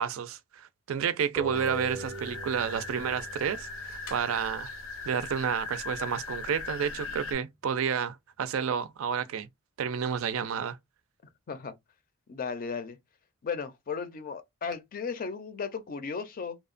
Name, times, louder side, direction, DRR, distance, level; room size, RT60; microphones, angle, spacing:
voice 1, 0.0-4.7 5.0-9.5 9.8-10.8, right 7 dB, 70° right, 0.4 m, -30 dB
sound 1, 1.4-4.6, right 1 dB, 5° right, 0.6 m, -41 dB
sound 2, 1.5-7.3, left 3 dB, 85° left, 0.9 m, -39 dB
voice 2, 12.3-13.0 13.4-16.6, left 5 dB, 45° left, 0.5 m, -35 dB
2.8 x 2.1 x 2.4 m
head